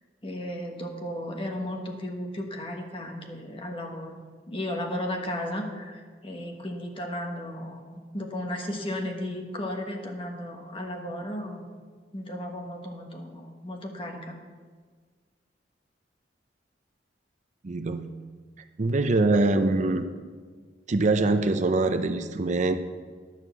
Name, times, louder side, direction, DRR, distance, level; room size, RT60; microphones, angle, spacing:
voice 1, 0.2-4.2 4.5-11.7 12.1-14.4, left 1 dB, 30° left, 2 dB, 1.3 m, -34 dB
voice 2, 17.6-18.1 18.8-20.1 20.9-22.7, right 2 dB, 40° right, 8 dB, 0.5 m, -23 dB
11.0 x 6.4 x 7.0 m, 1.5 s
head